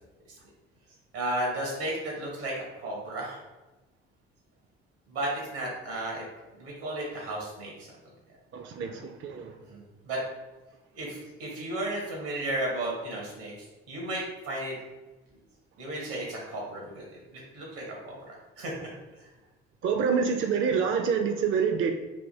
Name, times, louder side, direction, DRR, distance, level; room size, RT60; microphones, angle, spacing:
voice 1, 1.1-3.4 5.1-6.2 6.6-7.9 9.7-10.2 10.9-13.5 13.9-14.7 15.8-17.0 17.3-18.7, right 1 dB, 80° right, -2 dB, 1.3 m, -34 dB
voice 2, 8.5-9.6 19.8-21.9, right 6 dB, 40° right, 5 dB, 0.4 m, -27 dB
3.4 x 2.8 x 2.7 m, 1.1 s
hypercardioid pair, 55°, 32 cm